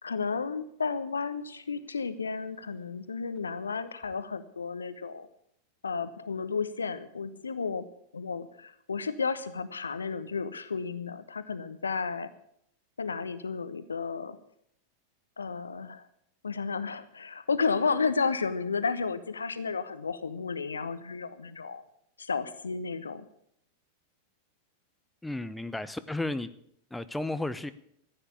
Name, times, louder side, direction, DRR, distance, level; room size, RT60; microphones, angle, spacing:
voice 1, 0.0-5.3 5.8-7.8 8.1-12.3 13.0-14.4 15.4-16.0 16.4-21.8 22.2-23.2, left 5 dB, 75° left, 13 dB, 1.0 m, -32 dB
voice 2, 25.2-26.5 26.9-27.7, left 2 dB, 5° left, 12 dB, 0.7 m, -33 dB
14.5 x 8.9 x 8.5 m, 0.73 s
figure-of-eight pair, 90°, 0 cm